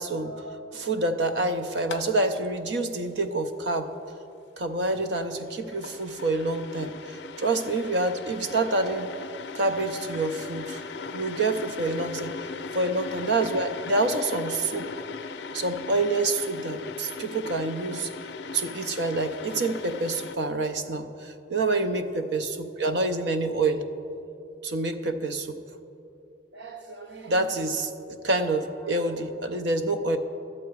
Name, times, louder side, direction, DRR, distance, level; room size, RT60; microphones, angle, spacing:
voice 1, 0.0-3.9 4.6-9.1 9.5-10.8 11.1-12.3 12.7-14.9 15.5-18.1 18.5-23.8 24.6-25.6 26.5-30.2, right 2 dB, 65° right, 8 dB, 0.6 m, -27 dB
sound 1, 1.8-2.0 2.4-2.5 5.1-20.4, left 4 dB, 65° left, 0.4 m, -39 dB
11.5 x 7.6 x 4.7 m, 2.8 s
head